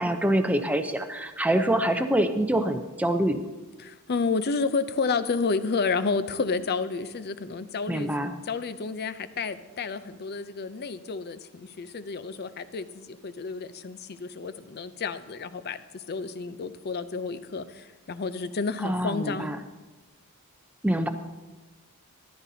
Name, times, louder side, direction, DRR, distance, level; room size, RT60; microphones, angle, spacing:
voice 1, 0.0-3.4 7.9-8.4 18.8-19.6 20.8-21.1, right 1 dB, 5° right, 7 dB, 0.6 m, -25 dB
voice 2, 3.8-8.1 8.4-19.6, left 4 dB, 45° left, 12 dB, 0.5 m, -30 dB
14.0 x 11.5 x 2.8 m, 1.2 s
head